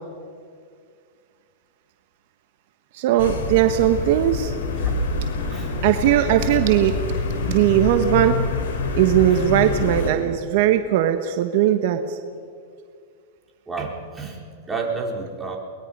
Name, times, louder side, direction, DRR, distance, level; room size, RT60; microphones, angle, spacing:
voice 1, 2.9-4.5 5.8-7.0 7.5-8.4 8.9-12.2, right 12 dB, 60° right, 7 dB, 1.3 m, -19 dB
sound 1, 3.2-10.1, left 3 dB, 80° left, 4.1 m, -26 dB
voice 2, 13.7-15.6, right 4 dB, 10° right, -1 dB, 3.9 m, -30 dB
23.5 x 20.5 x 5.5 m, 2.1 s
hypercardioid pair, 125°, 0 cm